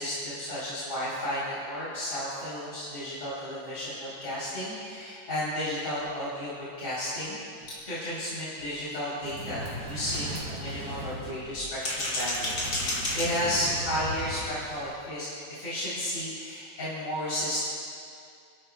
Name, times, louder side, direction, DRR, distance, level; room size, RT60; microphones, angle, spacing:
voice 1, 0.0-17.6, equal, 35° left, -10 dB, 4.1 m, -33 dB
sound 1, 6.6-6.7 7.1-7.2 7.6-7.7 8.1-8.2 8.6-8.7 9.1-9.3 9.7-10.8 11.6-13.8, left 1 dB, 75° left, 3.8 m, -33 dB
sound 2, 9.2-14.9, right 1 dB, 50° right, 2.5 m, -38 dB
28.5 x 12.0 x 2.3 m, 2.4 s
omnidirectional pair, 2.3 m